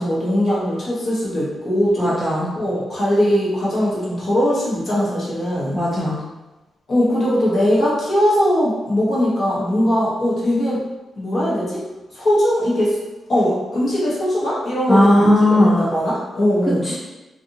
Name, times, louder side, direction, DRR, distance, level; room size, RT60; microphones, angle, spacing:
voice 1, 0.0-2.2 2.5-5.8 6.9-10.8 11.2-11.8 12.1-13.0 13.3-16.9, equal, 40° left, -7 dB, 1.0 m, -20 dB
voice 2, 2.0-2.5 5.7-6.2 14.9-15.9 16.8-16.9, left 1 dB, 5° left, -6 dB, 0.5 m, -16 dB
2.5 x 2.5 x 2.7 m, 1.1 s
cardioid pair, 120°, 0 cm